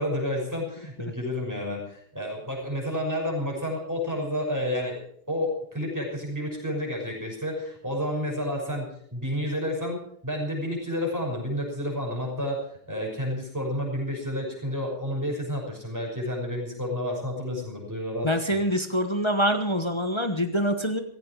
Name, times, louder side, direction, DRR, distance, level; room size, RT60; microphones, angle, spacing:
voice 1, 0.0-5.0 5.3-18.6, left 1 dB, 10° right, -1 dB, 6.0 m, -30 dB
voice 2, 18.2-21.0, equal, 25° left, 7 dB, 0.7 m, -25 dB
16.0 x 16.0 x 4.8 m, 0.66 s
omnidirectional pair, 2.3 m